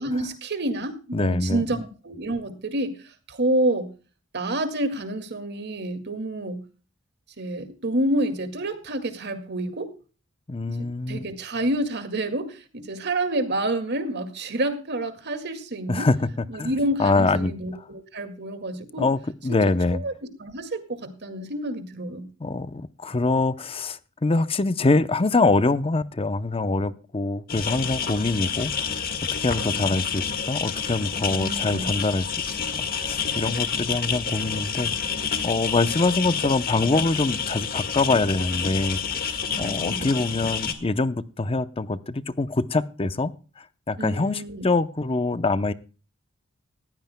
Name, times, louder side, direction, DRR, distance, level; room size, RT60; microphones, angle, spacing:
voice 1, 0.0-2.9 3.3-3.9 4.3-6.6 7.4-9.9 10.8-16.1 16.5-19.1 19.5-20.1 20.4-22.3 31.3-32.0 39.5-40.1 44.0-44.7, right 1 dB, 55° right, 8 dB, 2.1 m, -28 dB
voice 2, 1.1-1.6 10.5-11.2 15.9-16.3 16.5-16.7 17.0-17.5 19.0-20.0 22.4-29.1 29.4-34.9 35.4-43.3 43.6-45.7, left 3 dB, 25° left, 14 dB, 0.6 m, -24 dB
sound 1, 27.5-40.7, left 6 dB, 45° left, 1.7 m, -29 dB
19.5 x 15.0 x 2.2 m, 0.36 s
head